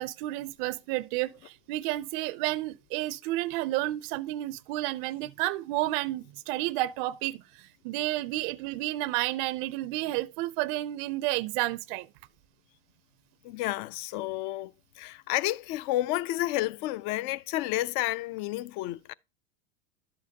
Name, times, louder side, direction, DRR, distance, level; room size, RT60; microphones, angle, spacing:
voice 1, 0.0-12.1, right 17 dB, 55° right, 0.4 m, -31 dB
voice 2, 13.4-19.1, left 16 dB, 55° left, 0.4 m, -31 dB
11.5 x 7.0 x 2.7 m
supercardioid pair, 115°, 30 cm